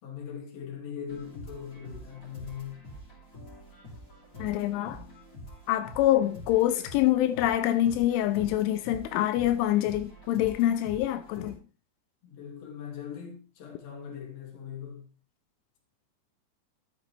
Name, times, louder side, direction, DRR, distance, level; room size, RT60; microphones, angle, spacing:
voice 1, 0.0-2.8 12.2-15.1, left 8 dB, 40° left, 2.9 m, -40 dB
sound 1, 1.1-11.5, equal, 20° left, 3.2 m, -46 dB
voice 2, 4.4-5.1 5.7-11.6, left 13 dB, 85° left, 3.2 m, -25 dB
12.5 x 9.1 x 3.4 m
omnidirectional pair, 5.5 m